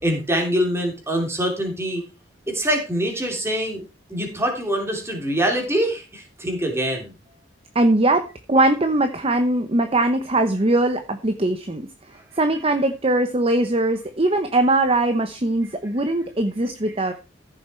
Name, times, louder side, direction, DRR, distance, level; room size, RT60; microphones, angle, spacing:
voice 1, 0.0-2.0 2.5-3.8 4.1-7.1, equal, 15° right, 2 dB, 3.5 m, -24 dB
voice 2, 7.7-11.8 12.4-17.1, right 2 dB, 30° right, 8 dB, 0.9 m, -21 dB
14.5 x 7.3 x 4.5 m, 0.30 s
head